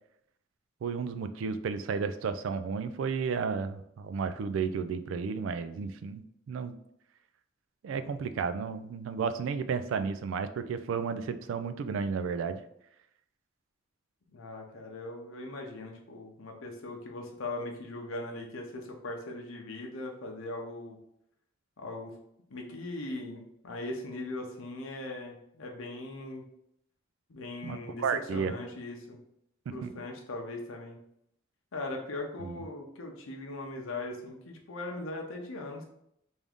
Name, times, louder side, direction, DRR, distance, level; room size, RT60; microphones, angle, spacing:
voice 1, 0.8-6.7 7.8-12.6 27.6-28.5 29.8-29.9 32.4-32.6, right 5 dB, 70° right, 11 dB, 0.3 m, -33 dB
voice 2, 14.3-21.0 21.8-22.2 22.5-26.4 27.3-28.0 28.3-29.2 29.7-31.0 31.7-35.9, left 2 dB, 90° left, 1 dB, 0.7 m, -39 dB
3.5 x 2.6 x 3.5 m, 0.75 s
head